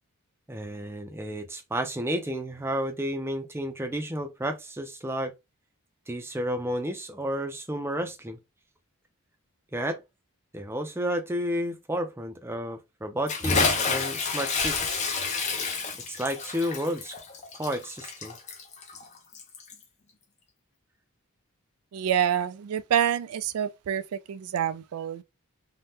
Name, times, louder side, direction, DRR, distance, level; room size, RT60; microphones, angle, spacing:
voice 1, 0.5-5.3 6.1-8.4 9.7-10.0 10.5-15.0 16.1-17.1 17.5-18.4, equal, 10° right, 0.4 m, -31 dB
Bathtub (filling or washing) / Splash splatter, 13.3-19.8, left 4 dB, 30° left, 0.6 m, -29 dB
voice 2, 21.9-25.2, right 9 dB, 85° right, 0.3 m, -27 dB
2.7 x 2.1 x 3.4 m
head